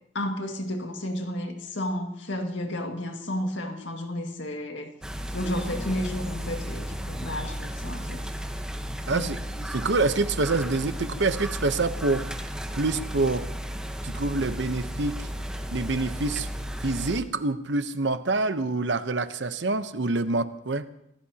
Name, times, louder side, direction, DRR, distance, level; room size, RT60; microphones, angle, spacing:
voice 1, 0.1-4.9 5.3-8.3 9.1-9.3 9.6-9.7, left 1 dB, 75° left, 4 dB, 2.0 m, -32 dB
sound 1, 5.0-17.2, equal, 5° right, 1.1 m, -34 dB
voice 2, 9.1-9.4 9.7-12.3 12.7-13.5 14.0-15.3 15.7-16.5 16.8-20.9, right 3 dB, 65° right, 11 dB, 0.9 m, -26 dB
26.0 x 16.0 x 2.9 m, 0.78 s
head